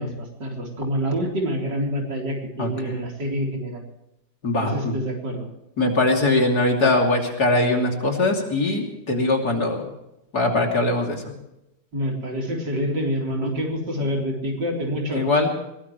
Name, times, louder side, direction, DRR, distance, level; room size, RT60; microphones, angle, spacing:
voice 1, 0.0-3.8 4.6-5.5 11.9-15.3, equal, 60° right, 0 dB, 4.4 m, -27 dB
voice 2, 2.6-2.9 4.4-4.9 5.8-9.8 10.3-11.3 13.4-13.5 15.1-15.5, left 2 dB, 50° left, 2 dB, 3.4 m, -21 dB
22.0 x 19.0 x 3.2 m, 0.88 s
omnidirectional pair, 2.1 m